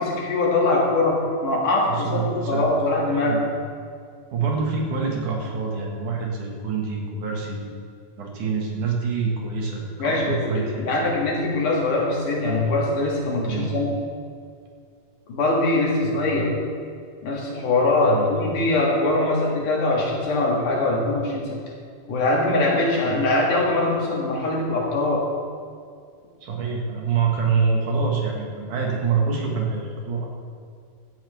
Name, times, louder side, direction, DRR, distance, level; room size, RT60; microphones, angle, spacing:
voice 1, 0.0-3.5 10.0-13.9 15.3-16.5 17.2-21.6 22.1-25.3, left 2 dB, 75° left, -3 dB, 3.8 m, -22 dB
voice 2, 1.9-2.7 3.2-3.4 4.3-7.7 8.2-11.1 13.4-13.8 16.0-16.2 18.0-18.4 26.4-30.3, right 5 dB, 70° right, -1 dB, 3.3 m, -26 dB
16.0 x 13.0 x 3.5 m, 2.2 s
omnidirectional pair, 3.7 m